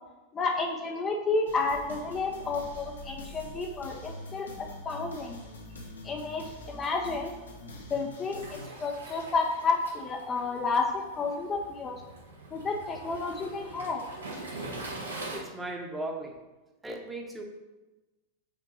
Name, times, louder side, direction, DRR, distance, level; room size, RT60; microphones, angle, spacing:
voice 1, 0.3-5.4 6.0-7.3 7.9-12.0 12.5-14.0, left 3 dB, 20° left, 2 dB, 0.6 m, -31 dB
sound 1, 1.5-8.6, left 1 dB, 75° left, 1.2 m, -45 dB
Waves surf, 8.3-15.4, right 2 dB, 75° right, 1.3 m, -43 dB
voice 2, 15.3-16.4 16.8-17.4, right 2 dB, 10° right, 2 dB, 1.0 m, -37 dB
5.3 x 4.4 x 5.6 m, 1.1 s
figure-of-eight pair, 90°, 0 cm